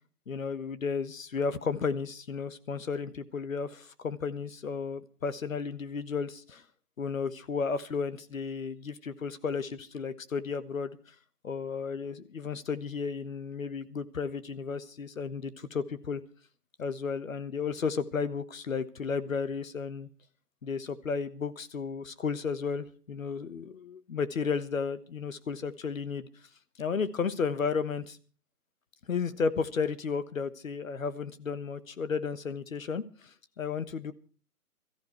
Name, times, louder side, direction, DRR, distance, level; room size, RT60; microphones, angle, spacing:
voice 1, 0.3-6.6 7.0-11.0 11.4-16.2 16.8-20.1 20.6-26.3 26.8-28.2 29.1-34.1, left 5 dB, 60° left, 14 dB, 1.3 m, -33 dB
22.5 x 14.0 x 3.1 m, 0.39 s
hypercardioid pair, 175°, 46 cm